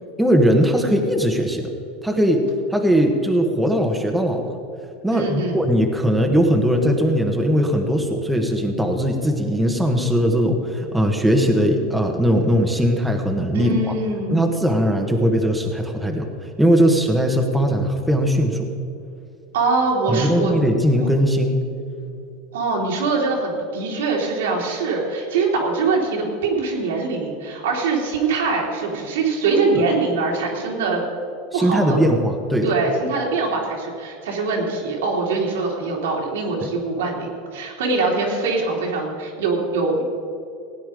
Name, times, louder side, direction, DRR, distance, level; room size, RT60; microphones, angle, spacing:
voice 1, 0.2-1.7 2.0-2.4 2.7-4.5 5.0-14.0 14.3-18.7 20.1-21.6 31.5-32.7, equal, 5° right, 2 dB, 1.4 m, -19 dB
voice 2, 5.1-5.6 13.5-14.5 19.5-20.5 21.0-21.1 22.5-31.0 31.5-32.0 32.6-40.0, right 3 dB, 90° right, -1 dB, 3.1 m, -23 dB
17.0 x 9.4 x 5.1 m, 2.5 s
supercardioid pair, 120°, 0 cm